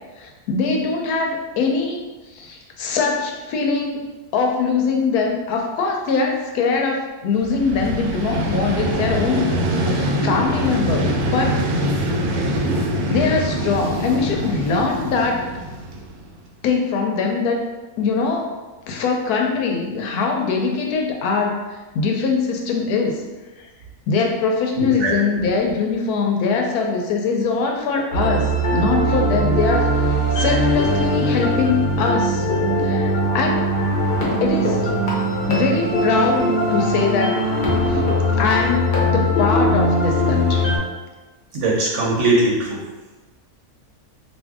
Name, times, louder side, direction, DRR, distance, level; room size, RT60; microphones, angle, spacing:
voice 1, 0.2-2.0 2.3-4.0 4.3-9.5 9.8-11.6 11.9-12.1 13.1-15.4 16.6-17.6 18.0-18.5 18.9-23.2 24.1-28.5 28.7-32.5 32.8-33.7 34.4-34.8 35.5-37.4 37.9-38.0 38.4-40.7, left 4 dB, 85° left, 1 dB, 1.1 m, -22 dB
Vehicle, 7.4-16.4, right 1 dB, 80° right, 1.1 m, -23 dB
voice 2, 24.7-25.1 41.5-42.8, right 2 dB, 60° right, -4 dB, 0.9 m, -20 dB
sound 1, 28.1-40.8, equal, 50° left, 0.7 m, -20 dB
2.6 x 2.5 x 3.5 m, 1.2 s
omnidirectional pair, 1.6 m